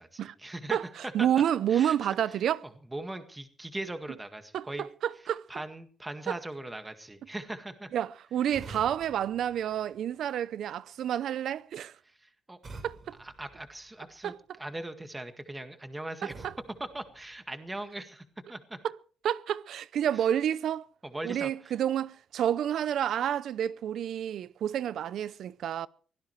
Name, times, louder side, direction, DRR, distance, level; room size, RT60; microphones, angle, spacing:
voice 1, 0.0-0.8 1.0-1.3 1.7-2.0 2.9-4.9 5.5-7.9 12.2-12.6 13.2-16.3 16.8-18.8 21.0-21.7, right 1 dB, 10° right, 1.9 m, -40 dB
voice 2, 0.7-2.6 4.5-5.4 6.3-6.4 7.9-11.9 12.8-13.2 14.2-14.6 16.2-16.5 18.8-18.9 19.2-20.9 21.2-25.9, right 10 dB, 70° right, 0.7 m, -29 dB
sound 1, 8.5-10.5 12.6-14.3 16.3-17.9, right 3 dB, 35° right, 4.8 m, -49 dB
23.5 x 17.0 x 3.3 m
cardioid pair, 135°, 0 cm